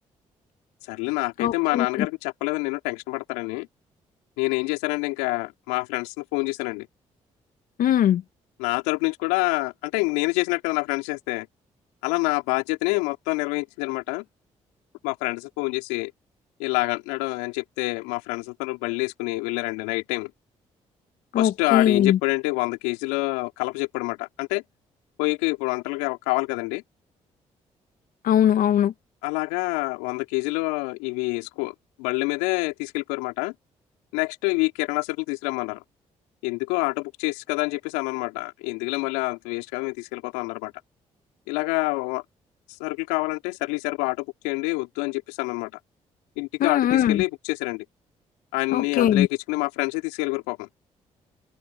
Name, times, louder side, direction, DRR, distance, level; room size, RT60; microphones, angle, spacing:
voice 1, 0.9-3.7 4.4-6.9 8.6-11.5 12.0-14.3 15.0-16.1 16.6-20.3 21.4-24.6 25.2-26.8 29.2-33.5 34.1-35.8 36.4-40.7 41.5-42.2 42.7-45.7 46.4-47.9 48.5-50.7, left 26 dB, 85° left, 3.5 m, -27 dB
voice 2, 1.4-2.1 7.8-8.2 21.3-22.2 28.2-28.9 46.6-47.2 48.7-49.3, left 10 dB, 65° left, 1.1 m, -20 dB
hypercardioid pair, 45°, 15 cm